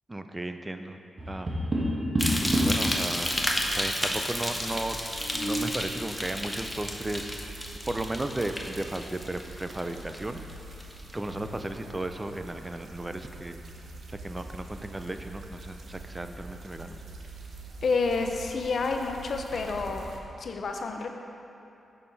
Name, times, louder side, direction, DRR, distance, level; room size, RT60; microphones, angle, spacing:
voice 1, 0.1-1.0 1.3-1.6 2.6-3.3 3.7-5.0 5.3-10.4 11.1-13.6 14.1-17.0, right 1 dB, 20° right, 7 dB, 0.4 m, -35 dB
Tap, 1.2-2.9 4.9-5.6, equal, 45° right, 1.2 m, -28 dB
sound 1, 2.2-10.5 10.8-11.3 11.8-11.9, equal, 10° left, 0.8 m, -32 dB
sound 2, 2.2-20.2, right 2 dB, 65° right, 0.7 m, -45 dB
voice 2, 17.8-20.1 20.4-21.1, left 4 dB, 65° left, 4 dB, 0.5 m, -29 dB
6.4 x 5.6 x 4.0 m, 2.8 s
cardioid pair, 60°, 0 cm